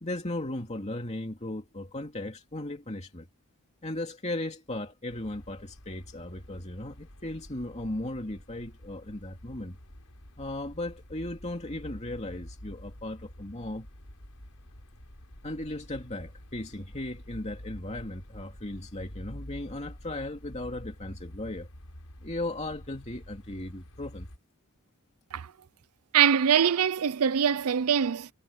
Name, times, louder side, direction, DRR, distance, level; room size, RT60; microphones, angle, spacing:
voice 1, 0.0-3.3 3.8-9.8 10.4-13.9 15.4-21.7 22.2-24.3, left 1 dB, 30° left, 2.5 m, -36 dB
sound 1, 5.1-24.4, equal, 85° left, 4.5 m, -48 dB
voice 2, 26.1-28.3, right 8 dB, 80° right, 0.5 m, -23 dB
head